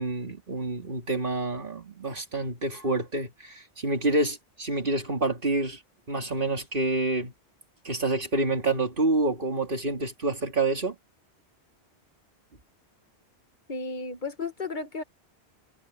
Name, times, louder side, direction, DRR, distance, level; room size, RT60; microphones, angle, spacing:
voice 1, 0.0-5.8 6.1-7.3 7.8-10.9, right 2 dB, 50° right, 2.9 m, -28 dB
voice 2, 13.7-15.0, left 4 dB, 45° left, 1.7 m, -33 dB
omnidirectional pair, 1.2 m